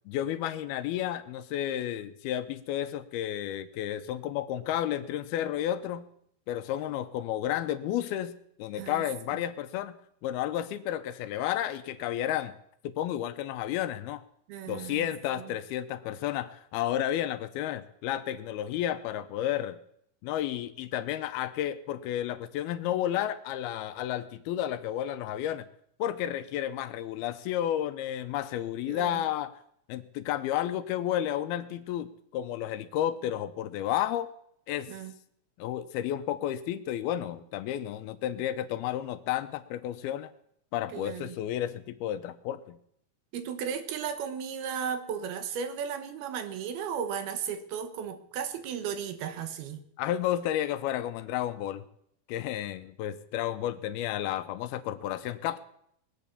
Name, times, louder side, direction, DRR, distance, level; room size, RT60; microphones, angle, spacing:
voice 1, 0.1-6.1 6.5-10.0 10.2-12.5 12.8-14.2 14.7-19.8 20.2-25.7 26.0-29.5 29.9-34.3 34.7-34.9 35.6-40.3 40.7-42.8 50.0-51.8 52.3-55.6, left 11 dB, 80° left, 11 dB, 2.6 m, -32 dB
voice 2, 14.5-15.1 15.3-15.6 28.9-29.2 34.9-35.1 40.9-41.4 43.3-49.8, right 7 dB, 75° right, 9 dB, 3.1 m, -35 dB
21.0 x 8.6 x 6.9 m, 0.71 s
omnidirectional pair, 4.6 m